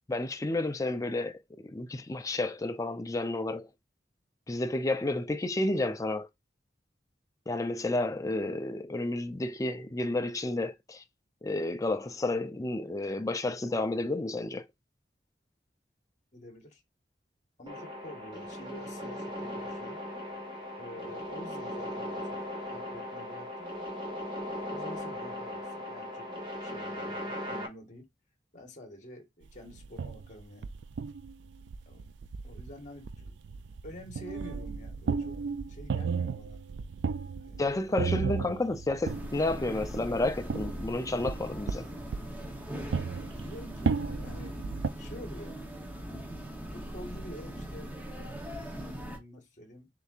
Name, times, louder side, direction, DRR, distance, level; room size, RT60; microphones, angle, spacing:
voice 1, 0.1-3.7 4.5-6.3 7.5-11.0 11.4-14.6 37.6-41.9, left 2 dB, 20° left, 0.5 m, -31 dB
voice 2, 16.3-16.8 17.6-20.0 20.8-22.4 22.7-23.7 24.3-26.3 26.6-28.1 28.5-30.7 31.9-32.0 32.4-33.4 33.8-36.6 37.4-37.6 43.3-44.6 45.0-45.6 46.7-47.9 48.8-49.9, left 1 dB, 45° left, 1.5 m, -48 dB
sound 1, 17.7-27.7, left 1 dB, 30° right, 1.2 m, -38 dB
sound 2, 29.7-44.9, right 5 dB, 80° right, 0.4 m, -34 dB
sound 3, 39.0-49.2, right 1 dB, 10° right, 0.8 m, -40 dB
6.7 x 2.8 x 2.5 m
head